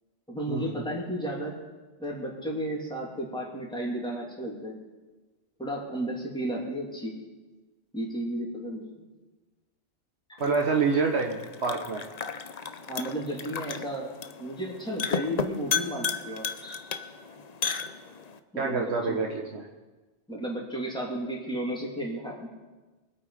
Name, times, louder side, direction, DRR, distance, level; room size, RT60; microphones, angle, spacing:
voice 1, 0.3-1.5 2.0-4.8 5.6-7.2 7.9-9.0 12.8-14.1 14.4-16.8 18.5-19.2 20.3-22.5, right 1 dB, 5° left, -3 dB, 3.0 m, -33 dB
sound 1, 10.4-18.4, left 6 dB, 40° left, 0.7 m, -34 dB
voice 2, 10.4-12.1 18.6-19.7, right 4 dB, 70° right, 1 dB, 1.4 m, -27 dB
23.5 x 8.6 x 5.0 m, 1.2 s
omnidirectional pair, 1.2 m